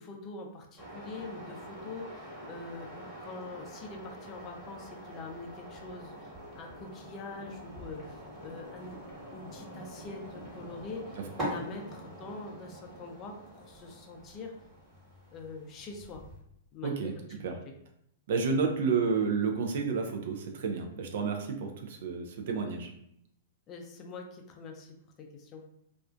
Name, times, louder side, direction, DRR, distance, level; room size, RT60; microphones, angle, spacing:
voice 1, 0.0-9.0 9.3-14.5 15.3-16.2 16.7-17.7 23.7-25.6, left 3 dB, 35° left, 2 dB, 0.5 m, -44 dB
sound 1, 0.8-16.4, right 1 dB, 20° right, 1.3 m, -45 dB
voice 2, 16.8-17.1 17.4-17.5 18.3-22.9, right 5 dB, 60° right, 3 dB, 0.4 m, -30 dB
2.4 x 2.1 x 2.4 m, 0.73 s
hypercardioid pair, 110°, 0 cm